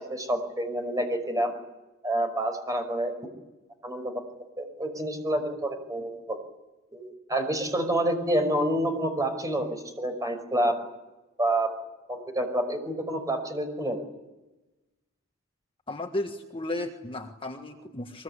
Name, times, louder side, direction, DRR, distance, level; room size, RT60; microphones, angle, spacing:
voice 1, 0.1-1.5 2.0-3.1 3.8-4.1 4.6-6.4 6.9-10.8 11.4-11.7 12.1-14.0, right 1 dB, 15° right, 5 dB, 5.4 m, -28 dB
voice 2, 15.9-18.2, left 1 dB, 25° left, 4 dB, 1.6 m, -34 dB
23.5 x 22.5 x 9.9 m, 1.0 s
head